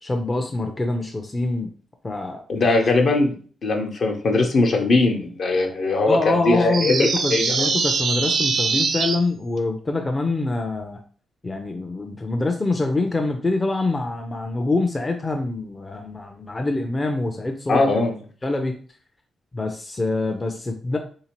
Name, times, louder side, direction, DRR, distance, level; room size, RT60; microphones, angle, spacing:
voice 1, 0.0-1.7 2.0-2.5 6.0-11.0 11.4-17.9 18.4-18.7 19.5-21.0, left 2 dB, 25° left, 4 dB, 0.5 m, -25 dB
voice 2, 2.5-3.3 3.6-7.7 17.7-18.1, left 3 dB, 60° left, 2 dB, 0.8 m, -20 dB
sound 1, 6.7-9.2, right 4 dB, 60° right, 0.5 m, -23 dB
3.4 x 2.8 x 2.9 m, 0.43 s
supercardioid pair, 65°, 0 cm